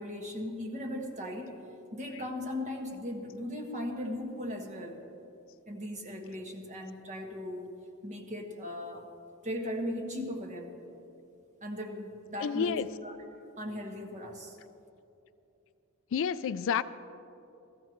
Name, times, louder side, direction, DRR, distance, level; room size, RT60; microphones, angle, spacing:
voice 1, 0.0-1.6 1.9-5.0 5.7-7.7 8.0-9.1 9.4-10.7 11.6-13.3 13.6-14.6, left 1 dB, 35° right, 2 dB, 1.4 m, -38 dB
voice 2, 12.4-12.9 16.1-16.8, left 7 dB, 60° left, 15 dB, 0.4 m, -29 dB
18.0 x 14.5 x 3.1 m, 2.8 s
head